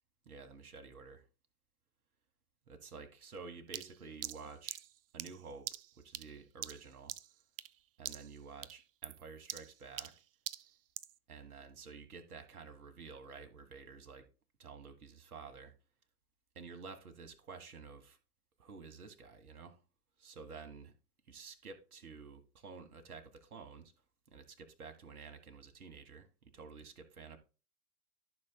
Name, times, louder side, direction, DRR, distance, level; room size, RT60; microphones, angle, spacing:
voice 1, 0.3-1.2 2.7-4.8 5.1-5.7 6.0-7.1 8.0-10.1 11.3-14.3 14.6-15.7 16.6-18.2 18.6-19.8 20.2-20.9 21.3-23.9 24.3-27.4, right 5 dB, 65° right, 1.7 m, -51 dB
sound 1, 3.7-7.8 8.0-8.4 8.6-11.2, right 12 dB, 40° right, 0.4 m, -44 dB
14.0 x 6.2 x 2.3 m
figure-of-eight pair, 100°, 46 cm